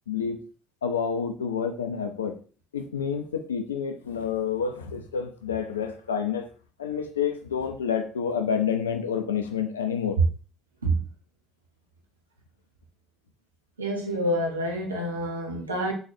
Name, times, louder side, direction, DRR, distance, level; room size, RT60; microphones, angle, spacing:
voice 1, 0.1-0.4 0.8-2.4 2.7-6.5 6.8-10.2, left 7 dB, 85° left, 0.4 m, -28 dB
voice 2, 13.8-15.9, right 1 dB, 90° right, 0.6 m, -27 dB
3.8 x 3.1 x 2.5 m
figure-of-eight pair, 50°, 0 cm